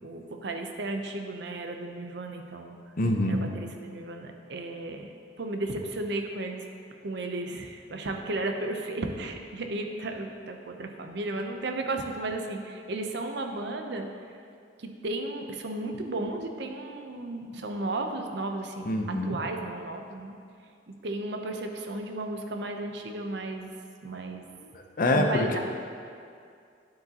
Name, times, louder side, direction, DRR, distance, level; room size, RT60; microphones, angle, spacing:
voice 1, 0.0-2.8 3.3-5.1 5.4-6.7 7.0-14.1 14.8-20.4 20.9-23.7 24.0-24.4 25.1-25.6, right 2 dB, 65° right, 4 dB, 0.7 m, -34 dB
voice 2, 3.0-3.4 18.9-19.4 25.0-25.5, left 1 dB, 50° left, 3 dB, 0.7 m, -25 dB
9.6 x 7.7 x 2.9 m, 2.4 s
head